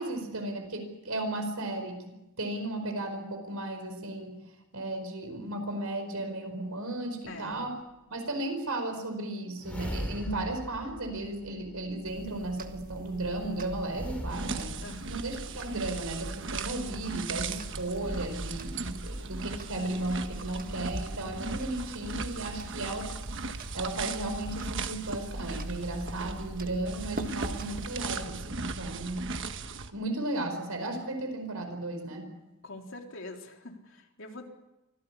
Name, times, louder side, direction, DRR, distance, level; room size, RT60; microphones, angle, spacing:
voice 1, 0.0-4.3 4.7-7.7 8.1-14.7 15.0-23.1 23.5-29.6 29.9-32.3, right 2 dB, 70° right, 6 dB, 5.0 m, -35 dB
voice 2, 7.3-7.7 14.8-15.2 32.6-34.5, left 2 dB, 60° left, 2 dB, 3.7 m, -44 dB
sound 1, 9.6-12.1 13.9-15.6, equal, 5° left, 2.7 m, -40 dB
sound 2, 12.0-28.3, right 1 dB, 40° right, 1.5 m, -43 dB
sound 3, 14.3-29.9, right 4 dB, 55° right, 1.3 m, -38 dB
25.0 x 17.0 x 8.6 m, 0.96 s
head